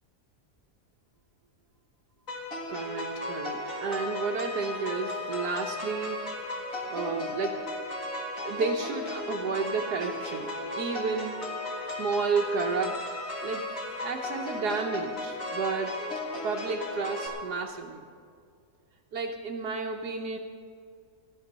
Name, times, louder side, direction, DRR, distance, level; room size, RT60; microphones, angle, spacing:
sound 1, 2.3-17.3, left 2 dB, 60° left, 2.4 m, -35 dB
voice 1, 2.7-6.3 6.9-7.6 8.4-10.5 10.8-11.5 11.9-13.0 13.4-13.7 14.0-16.0 16.4-18.1 19.1-20.4, right 4 dB, 85° right, 0 dB, 1.4 m, -31 dB
17.5 x 13.0 x 4.0 m, 2.3 s
omnidirectional pair, 1.7 m